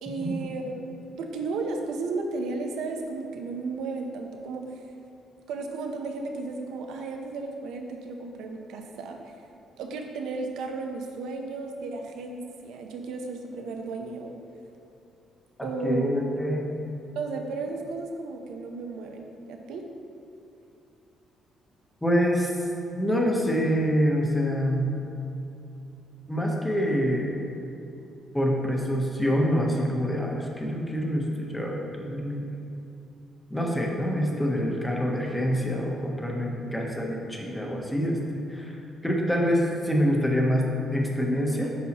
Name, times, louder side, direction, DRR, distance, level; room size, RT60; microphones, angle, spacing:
voice 1, 0.0-4.7 5.5-9.3 9.8-14.4 15.6-16.2 17.1-19.8, right 3 dB, 85° right, 3 dB, 0.7 m, -34 dB
voice 2, 15.6-16.7 22.0-22.5 22.9-25.0 26.3-27.4 28.3-32.5 33.5-38.2 38.5-38.8 39.0-41.7, equal, 5° left, -1 dB, 0.9 m, -26 dB
8.2 x 5.5 x 2.9 m, 2.7 s
cardioid pair, 130°, 0 cm